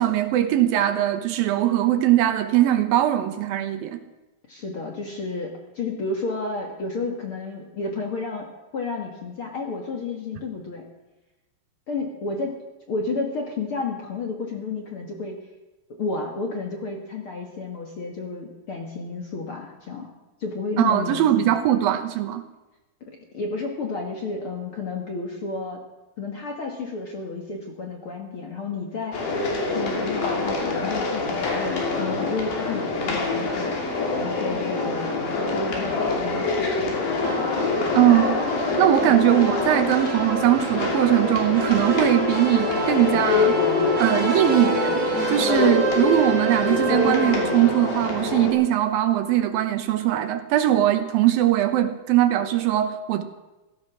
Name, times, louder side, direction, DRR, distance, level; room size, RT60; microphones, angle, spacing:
voice 1, 0.0-4.0 20.8-22.4 37.9-38.4 38.8-43.6 44.0-45.0 45.3-53.2, right 12 dB, 75° right, 9 dB, 2.6 m, -21 dB
voice 2, 4.5-8.5 8.7-10.8 11.9-12.6 12.9-15.4 16.0-20.1 20.4-21.5 23.3-25.8 26.2-29.3 29.6-37.1 39.1-39.3, left 3 dB, 50° left, 1 dB, 1.8 m, -31 dB
sound 1, 29.1-48.5, left 3 dB, 70° left, 4.5 m, -25 dB
sound 2, 37.2-48.5, right 2 dB, 35° right, 2.0 m, -29 dB
16.5 x 14.5 x 6.1 m, 1.1 s
omnidirectional pair, 4.4 m